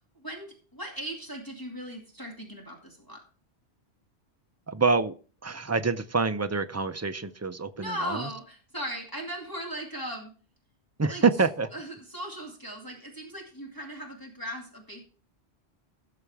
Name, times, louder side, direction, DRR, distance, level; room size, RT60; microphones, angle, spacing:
voice 1, 0.1-3.2 7.8-10.3 11.1-11.2 11.7-15.0, equal, 20° left, -1 dB, 2.4 m, -38 dB
voice 2, 4.7-5.1 5.4-8.3 11.0-11.7, right 4 dB, 20° right, 9 dB, 0.4 m, -26 dB
17.5 x 6.9 x 3.4 m, 0.38 s
omnidirectional pair, 1.1 m